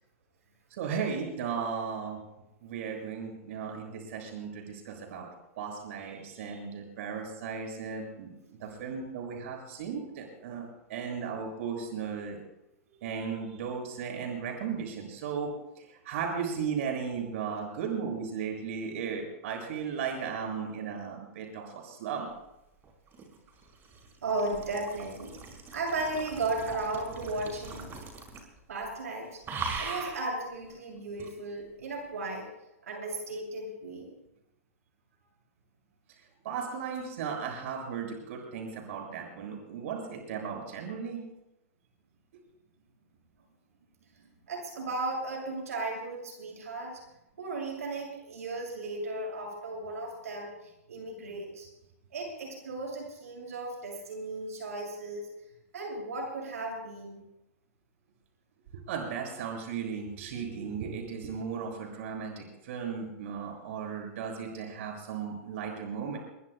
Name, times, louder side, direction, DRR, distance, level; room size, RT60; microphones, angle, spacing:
voice 1, 0.7-2.2 2.6-5.3 5.6-8.3 8.6-12.4 13.0-22.3 36.4-41.2 58.7-66.2, right 6 dB, 60° right, 1 dB, 6.7 m, -36 dB
sound 1, 22.8-28.6 28.8-29.1 29.4-30.3 31.2-31.3, right 4 dB, 30° right, 5.3 m, -40 dB
voice 2, 24.2-25.3 25.7-27.9 28.7-29.4 29.8-32.5 32.8-34.1 44.5-47.0 47.4-50.5 50.9-51.7 52.1-55.3 55.7-57.2, right 2 dB, 85° right, 0 dB, 6.8 m, -35 dB
23.5 x 22.5 x 2.2 m, 0.89 s
hypercardioid pair, 125°, 8 cm